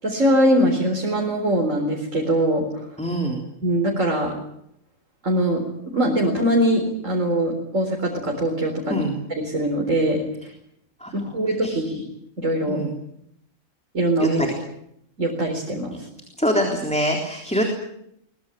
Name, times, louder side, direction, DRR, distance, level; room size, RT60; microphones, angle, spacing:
voice 1, 0.0-2.9 3.6-4.3 5.2-5.6 5.9-9.0 9.3-10.2 11.1-12.0 12.4-12.8 13.9-14.4 15.2-16.1, right 1 dB, 75° right, 1 dB, 4.6 m, -22 dB
voice 2, 3.0-3.4 8.9-9.1 11.0-11.3 11.6-11.9 12.7-12.9 14.2-14.5 16.4-17.6, equal, 5° left, 2 dB, 3.6 m, -24 dB
23.5 x 21.5 x 9.1 m, 0.76 s
omnidirectional pair, 1.3 m